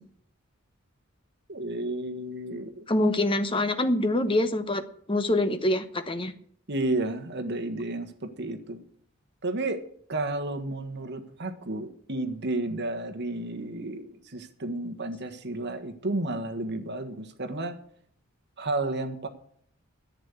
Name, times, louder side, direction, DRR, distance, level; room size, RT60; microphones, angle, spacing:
voice 1, 1.5-2.8 6.7-8.8 9.4-9.8 10.1-17.8 18.6-19.3, right 2 dB, 55° right, 6 dB, 1.5 m, -32 dB
voice 2, 2.9-6.3, left 1 dB, 25° left, 9 dB, 1.0 m, -25 dB
10.5 x 8.4 x 8.1 m, 0.62 s
head